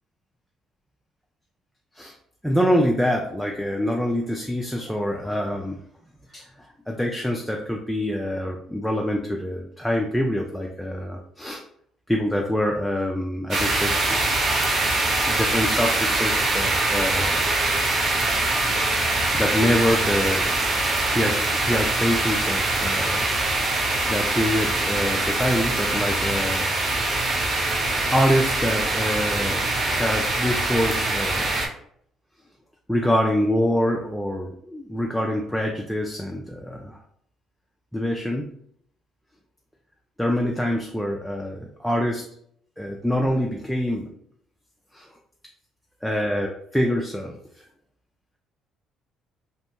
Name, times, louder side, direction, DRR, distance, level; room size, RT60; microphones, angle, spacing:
voice 1, 2.4-5.8 6.3-6.4 6.9-11.6 12.1-14.2 15.3-17.5 19.3-20.6 21.1-23.3 24.1-26.7 28.1-31.5 32.9-37.0 37.9-38.5 40.2-42.2 42.8-44.1 44.9-45.1 46.0-47.6, equal, ahead, 0 dB, 0.3 m, -25 dB
sound 1, 13.5-31.7, right 2 dB, 50° right, 0.6 m, -23 dB
2.6 x 2.1 x 2.8 m, 0.67 s
cardioid pair, 95°, 0 cm